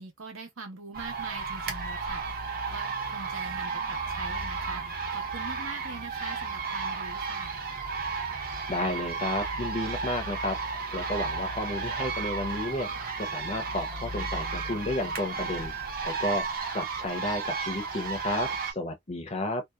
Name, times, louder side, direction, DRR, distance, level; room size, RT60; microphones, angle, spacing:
voice 1, 0.0-7.6, right 4 dB, 85° right, 1.0 m, -43 dB
sound 1, 0.9-18.7, right 4 dB, 45° right, 0.7 m, -33 dB
voice 2, 8.7-12.9 13.2-15.7 16.0-16.4 16.7-19.6, left 1 dB, 30° left, 0.6 m, -32 dB
2.7 x 2.1 x 2.2 m
head